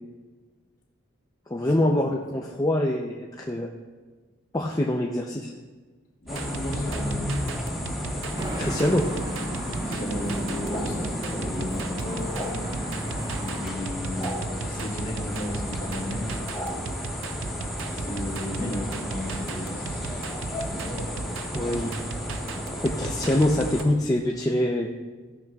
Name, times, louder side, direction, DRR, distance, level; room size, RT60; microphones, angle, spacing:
voice 1, 1.5-3.7 4.5-5.5 8.6-9.0 21.5-21.9 22.7-24.9, left 1 dB, 15° left, 0 dB, 0.5 m, -24 dB
voice 2, 6.2-7.4 8.6-9.0 9.8-12.3 13.0-14.3 14.6-16.4 17.9-20.0 20.7-21.0, left 1 dB, 40° left, -2 dB, 2.4 m, -35 dB
sound 1, 6.2-23.8, right 4 dB, 75° right, 0.5 m, -37 dB
sound 2, 6.3-23.8, equal, ahead, 1.9 m, -32 dB
Traffic noise roadway noise, 8.4-13.7, right 1 dB, 20° right, 1.0 m, -35 dB
16.5 x 12.0 x 2.3 m, 1.4 s
head